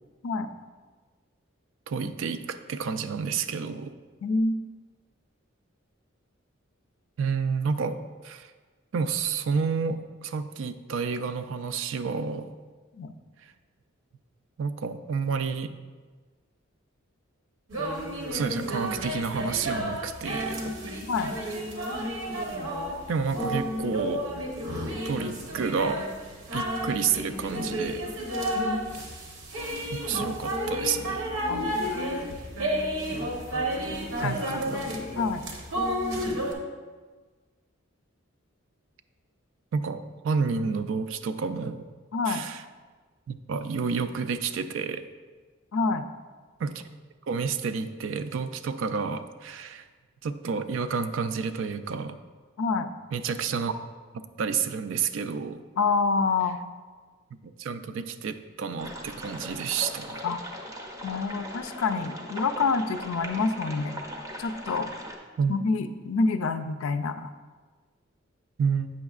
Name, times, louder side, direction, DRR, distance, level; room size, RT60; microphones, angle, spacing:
voice 1, 1.9-4.0 7.2-8.0 8.2-8.5 8.9-12.5 14.6-15.7 18.3-20.6 23.1-24.3 25.0-26.0 26.5-28.0 29.9-31.3 34.2-34.9 39.7-41.9 42.3-42.6 43.3-45.0 46.6-46.8 47.3-49.9 50.2-52.2 53.1-53.7 54.4-55.6 57.6-60.2 65.4-65.5 68.6-68.9, right 5 dB, 65° right, 11 dB, 0.3 m, -30 dB
voice 2, 4.2-4.6 13.0-13.1 21.1-21.4 28.6-28.8 31.5-31.7 34.2-34.9 35.2-35.4 40.6-40.7 42.1-42.5 45.7-46.1 52.6-52.9 55.8-56.6 60.2-60.4 61.0-64.0 64.4-64.9 65.5-67.3, left 4 dB, 75° left, 10 dB, 0.4 m, -27 dB
sound 1, 17.7-36.5, equal, 90° right, 1.1 m, -31 dB
sound 2, 58.8-65.2, equal, 15° right, 0.5 m, -39 dB
8.4 x 6.2 x 2.4 m, 1.4 s
head